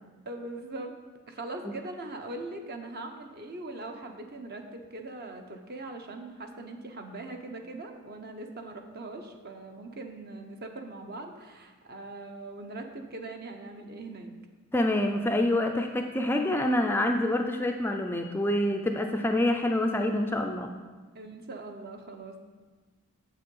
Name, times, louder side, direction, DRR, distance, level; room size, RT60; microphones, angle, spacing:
voice 1, 0.3-0.9 1.3-14.3 21.1-22.4, right 2 dB, 45° right, 4 dB, 0.8 m, -41 dB
voice 2, 14.7-20.7, left 1 dB, 10° left, 3 dB, 0.4 m, -26 dB
7.6 x 6.7 x 5.4 m, 1.3 s
head